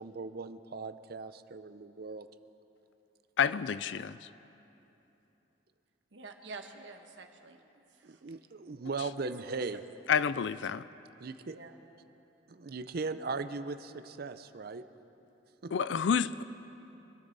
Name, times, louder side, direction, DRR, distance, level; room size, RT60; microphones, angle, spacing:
voice 1, 0.0-2.3 8.0-9.8 11.2-11.6 12.5-14.8 15.6-15.7, right 4 dB, 60° right, 0.6 m, -38 dB
voice 2, 3.4-4.3 9.0-9.1 10.1-10.9 15.7-16.4, left 7 dB, 80° left, 0.4 m, -29 dB
voice 3, 6.1-7.6 7.9-8.2 9.2-9.8 11.5-11.8, right 2 dB, 90° right, 1.3 m, -47 dB
25.0 x 13.5 x 4.1 m
head